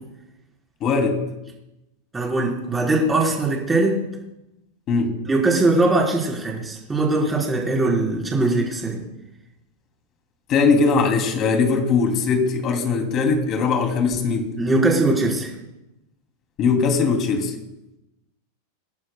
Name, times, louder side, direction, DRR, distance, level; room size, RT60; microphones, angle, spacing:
voice 1, 0.8-1.2 4.9-5.2 10.5-14.5 16.6-17.5, left 4 dB, 30° left, 3 dB, 2.8 m, -20 dB
voice 2, 2.1-4.0 5.3-9.0 14.6-15.5, right 2 dB, 10° right, -3 dB, 4.0 m, -21 dB
26.5 x 11.5 x 2.3 m, 0.94 s
supercardioid pair, 155°, 0 cm